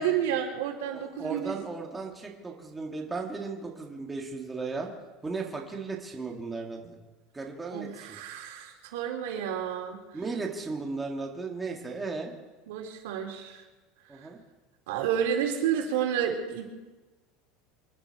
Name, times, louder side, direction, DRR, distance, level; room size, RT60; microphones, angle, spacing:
voice 1, 0.0-1.5 7.7-10.0 12.7-13.6 14.1-14.3 14.9-16.6, right 9 dB, 85° right, 0 dB, 3.7 m, -30 dB
voice 2, 0.9-4.9 5.2-7.0 7.3-8.2 10.1-12.3 14.1-14.4, right 4 dB, 10° right, 0 dB, 1.8 m, -36 dB
27.5 x 10.5 x 4.7 m, 1.2 s
supercardioid pair, 175°, 0 cm